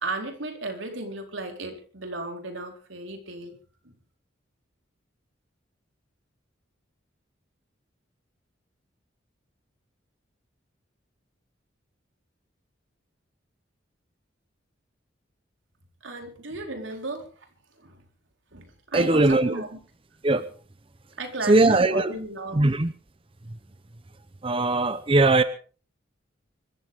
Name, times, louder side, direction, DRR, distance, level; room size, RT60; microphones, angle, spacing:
voice 1, 0.0-3.6 3.8-3.9 16.0-17.3 17.8-18.0 18.5-19.8 21.2-22.6, right 2 dB, 85° right, 3 dB, 4.2 m, -34 dB
voice 2, 18.9-19.6 20.2-20.5 21.5-22.1 22.5-22.9 24.4-25.4, right 2 dB, 30° right, 12 dB, 0.8 m, -20 dB
25.0 x 14.5 x 3.6 m, 0.39 s
head